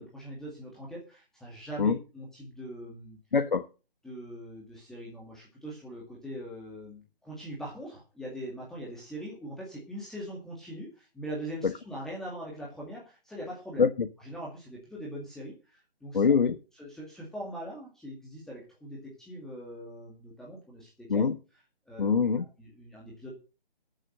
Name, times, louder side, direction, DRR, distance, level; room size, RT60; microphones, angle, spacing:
voice 1, 0.0-3.2 4.0-13.8 14.2-16.2 16.8-21.2 21.9-22.1 22.6-23.3, right 1 dB, ahead, 2.1 m, -42 dB
voice 2, 3.3-3.7 11.6-11.7 13.8-14.1 16.1-16.6 21.1-21.3 22.0-22.5, left 5 dB, 55° left, 1.3 m, -24 dB
14.0 x 7.7 x 6.6 m
figure-of-eight pair, 155°, 30 cm